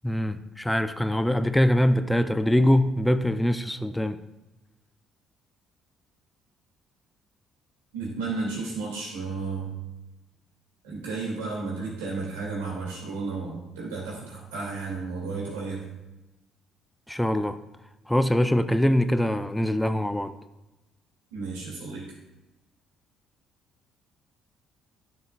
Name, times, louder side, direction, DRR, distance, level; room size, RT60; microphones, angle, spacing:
voice 1, 0.0-4.2 17.1-17.6 18.1-20.3, left 1 dB, 5° left, 11 dB, 0.4 m, -23 dB
voice 2, 7.9-9.7 10.8-15.9 21.3-22.1, right 4 dB, 85° right, -3 dB, 2.3 m, -33 dB
11.0 x 6.7 x 2.3 m, 1.0 s
hypercardioid pair, 55°, 0 cm